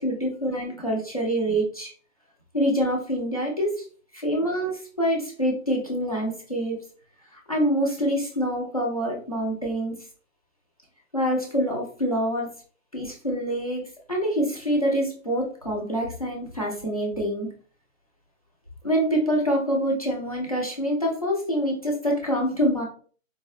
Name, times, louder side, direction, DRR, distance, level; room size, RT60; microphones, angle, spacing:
voice 1, 0.0-1.9 2.5-3.8 4.1-6.8 7.5-9.9 11.1-12.5 12.9-17.5 18.8-22.8, equal, 25° left, -1 dB, 0.9 m, -26 dB
4.0 x 3.1 x 3.1 m, 0.42 s
figure-of-eight pair, 180°, 40 cm